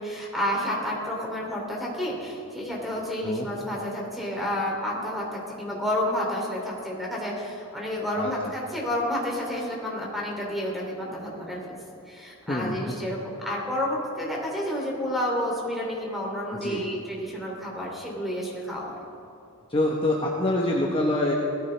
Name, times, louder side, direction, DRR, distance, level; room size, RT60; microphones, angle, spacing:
voice 1, 0.0-11.8 12.1-18.9, left 1 dB, ahead, -3 dB, 2.9 m, -30 dB
voice 2, 8.2-8.5 12.5-12.8 16.5-16.8 19.7-21.3, left 1 dB, 25° left, -2 dB, 1.0 m, -26 dB
18.0 x 14.0 x 3.4 m, 2.8 s
head